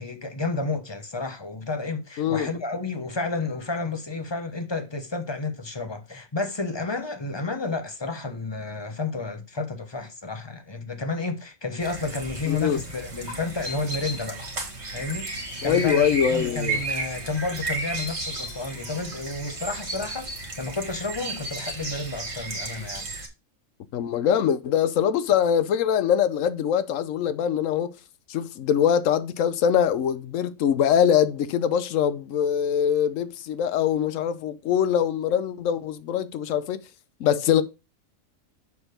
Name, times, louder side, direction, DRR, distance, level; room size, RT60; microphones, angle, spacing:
voice 1, 0.0-14.4 14.9-16.0 16.3-23.1, left 3 dB, 20° left, 0.9 m, -31 dB
voice 2, 2.2-2.5 12.5-12.8 15.6-16.8 23.9-27.9 28.3-36.8 37.2-37.6, left 9 dB, 75° left, 1.1 m, -23 dB
sound 1, 11.8-23.3, right 2 dB, 50° right, 2.2 m, -34 dB
6.9 x 4.4 x 5.1 m
omnidirectional pair, 1.4 m